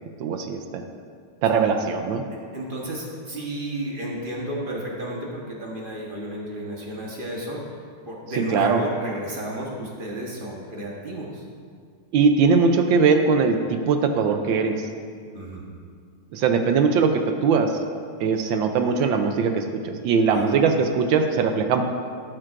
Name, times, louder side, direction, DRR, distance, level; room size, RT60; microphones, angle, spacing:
voice 1, 0.2-0.8 1.4-2.2 8.5-8.8 12.1-14.7 16.3-17.7 18.2-21.8, right 5 dB, 75° right, 6 dB, 1.3 m, -20 dB
voice 2, 2.5-7.6 8.0-11.4 15.3-15.6 20.2-20.5, right 1 dB, 35° right, -3 dB, 1.0 m, -32 dB
12.0 x 9.2 x 2.5 m, 2.1 s
omnidirectional pair, 2.3 m